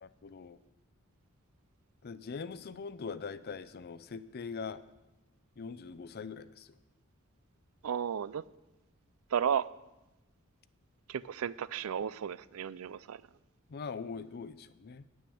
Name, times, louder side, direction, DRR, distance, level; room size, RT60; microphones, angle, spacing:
voice 1, 0.0-0.6 2.0-4.8 5.6-6.7 13.7-15.1, left 5 dB, 50° left, 14 dB, 0.5 m, -42 dB
voice 2, 7.8-8.4 9.3-9.7 11.1-13.2, right 8 dB, 80° right, 18 dB, 0.4 m, -33 dB
9.6 x 6.3 x 8.5 m, 0.99 s
head